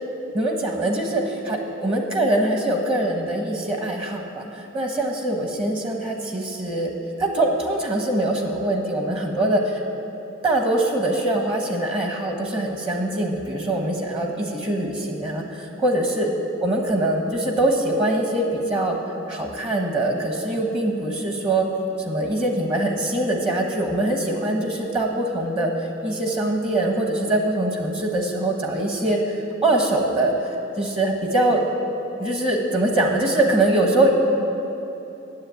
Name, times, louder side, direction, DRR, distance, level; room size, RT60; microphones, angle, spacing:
voice 1, 0.3-6.9 7.2-9.8 10.4-16.3 16.6-19.0 19.3-21.7 22.1-29.2 29.6-31.6 32.2-34.2, right 1 dB, 30° right, 2 dB, 1.1 m, -23 dB
9.8 x 7.6 x 9.4 m, 2.9 s
head